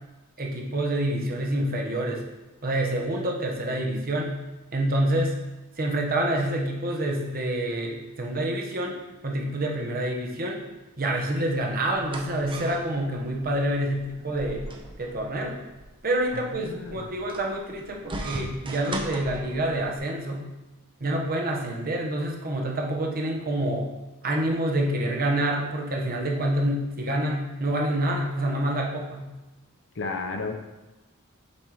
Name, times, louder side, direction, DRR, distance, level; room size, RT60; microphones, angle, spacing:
voice 1, 0.4-2.2 2.6-4.4 4.7-5.4 5.8-9.0 9.2-10.7 11.0-14.7 15.0-15.6 16.0-20.5 21.0-23.9 24.2-29.3, right 1 dB, 40° right, 0 dB, 1.1 m, -27 dB
sound 1, 11.8-20.0, right 1 dB, 25° right, 0.7 m, -39 dB
voice 2, 16.3-17.1 30.0-30.5, left 3 dB, 55° left, 4 dB, 0.9 m, -33 dB
7.4 x 4.3 x 4.8 m, 1.0 s
head